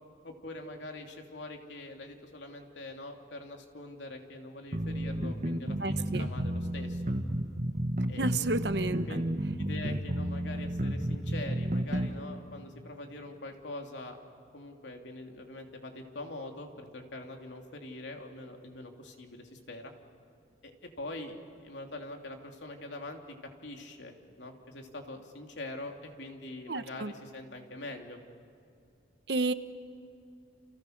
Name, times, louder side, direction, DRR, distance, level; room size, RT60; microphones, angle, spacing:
voice 1, 0.2-7.0 8.1-8.3 9.1-9.2 9.6-14.2 14.5-19.9 20.6-21.4 21.6-23.2 23.6-28.2, left 2 dB, 80° left, 3 dB, 3.0 m, -43 dB
sound 1, 4.7-12.1, right 1 dB, 40° right, 1.7 m, -31 dB
voice 2, 5.8-6.2 8.2-9.0 26.7-27.1 29.3-29.5, right 2 dB, 65° right, 11 dB, 1.1 m, -31 dB
29.5 x 28.5 x 6.6 m, 2.4 s
head